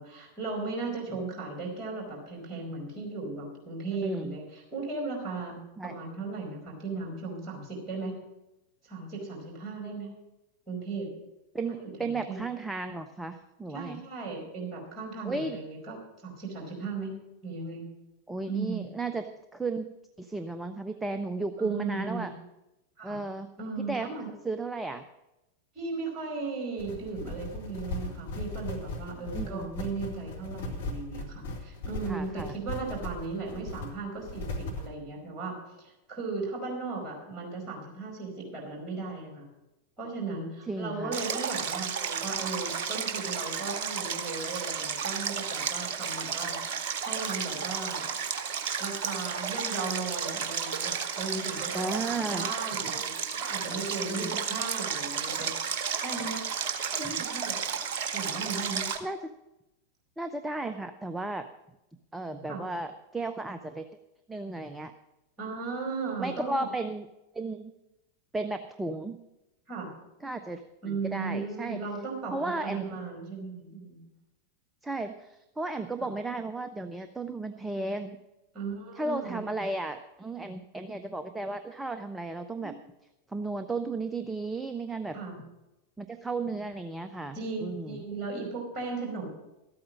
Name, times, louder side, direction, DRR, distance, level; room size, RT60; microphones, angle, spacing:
voice 1, 0.0-8.2 8.8-10.1 10.7-11.1 11.7-12.4 13.7-16.0 16.2-17.1 17.4-17.8 18.5-18.9 21.6-22.3 23.0-23.2 23.6-24.3 25.7-39.5 40.0-46.6 47.0-48.1 48.8-55.5 56.0-56.4 56.9-57.6 58.1-58.9 62.5-62.6 65.4-66.5 69.7-69.9 70.8-74.0 76.0-76.1 78.5-79.5 82.6-82.7 85.1-85.4 87.3-89.3, right 4 dB, 25° right, 0 dB, 5.0 m, -36 dB
voice 2, 4.0-4.4 5.8-5.9 11.5-14.0 15.2-15.6 18.3-19.9 20.2-22.3 23.0-23.5 23.8-24.1 24.4-25.0 29.3-29.8 32.1-32.6 40.7-41.2 51.7-52.5 54.1-54.4 57.0-57.1 59.0-59.2 60.2-61.5 62.1-63.9 64.3-64.9 66.2-67.1 67.3-67.7 68.3-69.2 70.2-71.8 72.3-72.9 74.8-78.2 79.0-82.7 83.3-85.2 86.0-88.0, right 2 dB, 5° right, 8 dB, 0.6 m, -34 dB
sound 1, 26.8-34.9, left 2 dB, 60° left, 2.0 m, -37 dB
Stream, 41.1-59.0, right 6 dB, 50° right, 1.1 m, -33 dB
13.0 x 8.7 x 6.2 m, 0.94 s
figure-of-eight pair, 90°, 0 cm